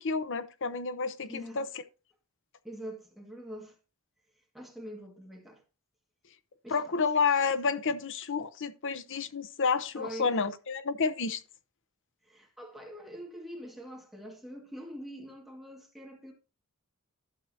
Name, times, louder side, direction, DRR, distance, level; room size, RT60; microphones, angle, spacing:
voice 1, 0.0-1.7 6.7-11.4, left 5 dB, 60° left, 0.8 m, -30 dB
voice 2, 1.2-1.7 2.6-3.8 4.5-5.6 6.6-6.9 10.0-10.4 12.2-16.3, equal, ahead, 1.8 m, -44 dB
12.0 x 7.7 x 2.8 m
head